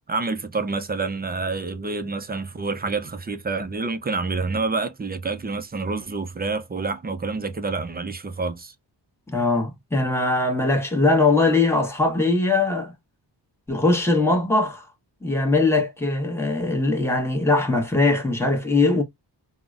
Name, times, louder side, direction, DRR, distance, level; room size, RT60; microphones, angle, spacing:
voice 1, 0.1-8.7, right 3 dB, 25° right, 0.4 m, -28 dB
voice 2, 9.3-12.9 13.7-14.9 15.2-19.0, left 3 dB, 5° left, 1.0 m, -21 dB
3.7 x 2.1 x 2.4 m
wide cardioid pair, 100°, 44 cm